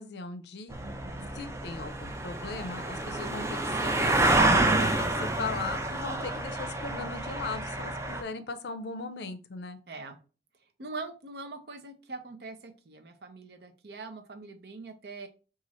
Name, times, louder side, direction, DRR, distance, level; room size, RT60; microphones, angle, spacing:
voice 1, 0.0-0.8 1.4-4.2 4.7-4.9 5.4-9.8, left 4 dB, 70° left, 10 dB, 0.5 m, -38 dB
sound 1, 0.7-8.2, right 2 dB, 15° right, 0.4 m, -28 dB
voice 2, 0.8-1.3 4.5-5.0 6.2-6.3 9.9-10.2 10.8-15.3, right 3 dB, 65° right, 7 dB, 0.6 m, -42 dB
3.0 x 2.4 x 4.1 m, 0.34 s
head